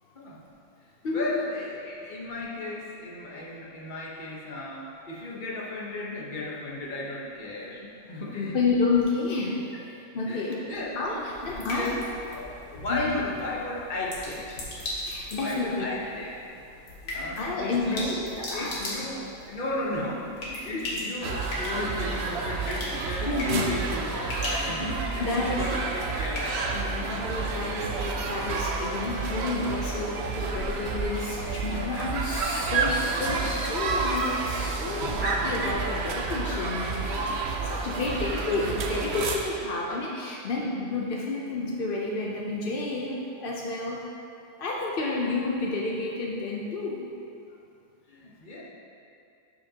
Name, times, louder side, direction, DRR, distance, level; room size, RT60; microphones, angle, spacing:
voice 1, 1.1-8.6 9.7-9.8 10.3-14.6 15.3-16.4 17.1-18.2 18.5-26.8 37.2-37.5 38.0-38.7 46.8-46.9 48.1-48.6, left 2 dB, 35° left, -4 dB, 1.0 m, -35 dB
voice 2, 8.5-10.6 10.9-12.1 12.9-13.1 15.0-15.9 17.0-18.7 20.7-20.8 23.3-23.6 24.3-24.5 25.2-25.6 26.7-37.3 37.6-44.0 44.6-47.1, left 3 dB, 65° left, -2 dB, 0.5 m, -30 dB
sound 1, 10.7-27.2, left 1 dB, 90° left, 2.3 m, -39 dB
sound 2, 21.2-39.4, right 4 dB, 65° right, 0.6 m, -30 dB
12.0 x 5.7 x 2.9 m, 2.5 s
omnidirectional pair, 1.8 m